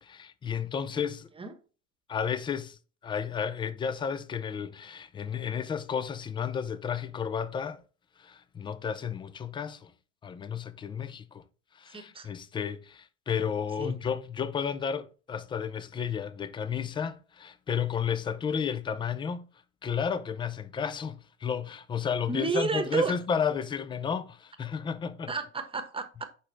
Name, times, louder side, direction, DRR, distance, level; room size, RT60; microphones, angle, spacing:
voice 1, 0.0-1.3 2.1-2.8 3.0-7.8 8.2-9.9 10.2-11.4 11.8-19.5 19.8-25.3, left 7 dB, 15° left, 0.4 m, -32 dB
voice 2, 11.9-12.3 13.8-14.0 22.3-23.2 25.3-26.2, right 4 dB, 15° right, 1.1 m, -31 dB
6.6 x 5.0 x 3.1 m
hypercardioid pair, 85°, 39 cm